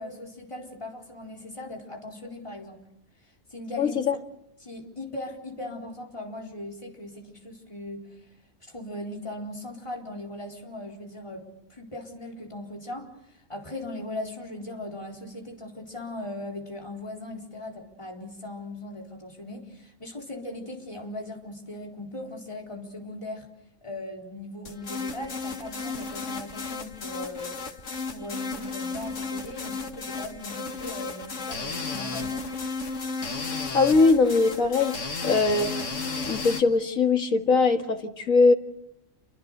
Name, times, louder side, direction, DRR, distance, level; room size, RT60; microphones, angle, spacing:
voice 1, 0.0-2.8 3.5-4.0 4.6-8.2 8.6-11.4 11.7-23.5 23.8-27.6 28.1-32.5, left 1 dB, 20° left, 1 dB, 4.3 m, -39 dB
voice 2, 3.8-4.2 33.7-35.0 35.2-35.7 36.3-38.5, left 4 dB, 80° left, 5 dB, 2.3 m, -21 dB
sound 1, 24.7-36.6, left 4 dB, 65° left, 2.2 m, -34 dB
28.5 x 24.0 x 6.7 m, 0.77 s
omnidirectional pair, 1.4 m